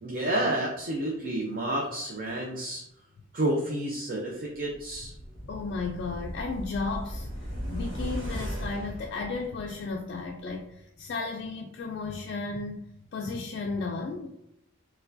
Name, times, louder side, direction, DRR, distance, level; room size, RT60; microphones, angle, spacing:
voice 1, 0.0-2.8 3.3-5.1, right 1 dB, 45° right, -1 dB, 0.5 m, -30 dB
sound 1, 4.7-9.9 10.3-10.4, equal, 70° right, 1.3 m, -37 dB
voice 2, 5.5-12.8 13.1-14.3, left 3 dB, 55° left, 0 dB, 0.3 m, -34 dB
4.3 x 2.2 x 2.6 m, 0.79 s
head